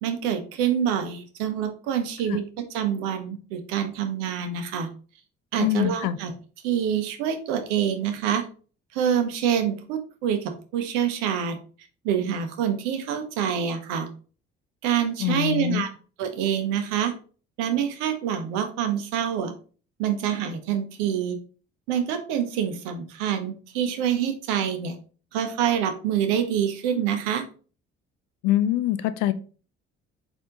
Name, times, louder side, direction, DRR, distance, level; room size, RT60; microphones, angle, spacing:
voice 1, 0.0-2.4 2.7-4.9 5.5-6.3 6.6-8.4 8.9-11.6 12.0-14.1 14.8-15.9 16.2-17.1 17.6-19.5 20.0-21.4 21.9-25.0 25.3-27.4, right 9 dB, 80° right, 7 dB, 0.8 m, -26 dB
voice 2, 5.6-6.2 15.2-15.8 28.4-29.3, left 12 dB, 75° left, 13 dB, 0.5 m, -24 dB
4.3 x 2.8 x 3.7 m, 0.38 s
hypercardioid pair, 50°, 31 cm